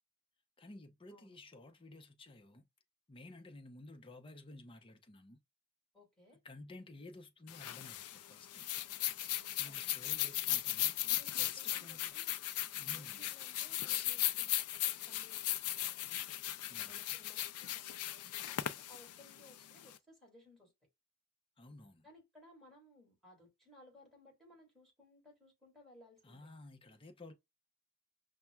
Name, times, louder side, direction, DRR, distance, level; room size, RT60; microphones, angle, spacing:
voice 1, 0.6-2.7 3.1-5.4 6.4-8.7 9.6-11.0 11.4-12.1 12.7-13.2 16.7-17.0 21.6-22.1 26.2-27.3, left 2 dB, 25° left, 0.6 m, -54 dB
voice 2, 5.9-6.4 9.4-10.3 11.0-12.4 12.8-16.2 16.8-20.7 22.0-26.5, left 1 dB, ahead, 2.1 m, -62 dB
sound 1, 7.5-19.9, left 13 dB, 75° left, 0.4 m, -37 dB
5.7 x 2.2 x 2.3 m
head